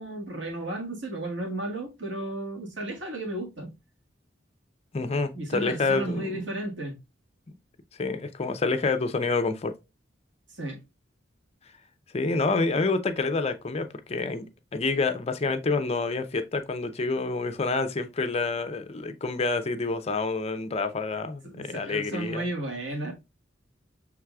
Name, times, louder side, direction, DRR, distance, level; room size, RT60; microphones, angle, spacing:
voice 1, 0.0-3.7 5.3-6.9 10.5-10.8 21.4-23.1, right 1 dB, 85° right, 1.7 m, -33 dB
voice 2, 4.9-6.4 8.0-9.7 12.1-14.5 14.7-22.5, left 3 dB, 35° left, 0.5 m, -28 dB
6.1 x 3.3 x 2.3 m
head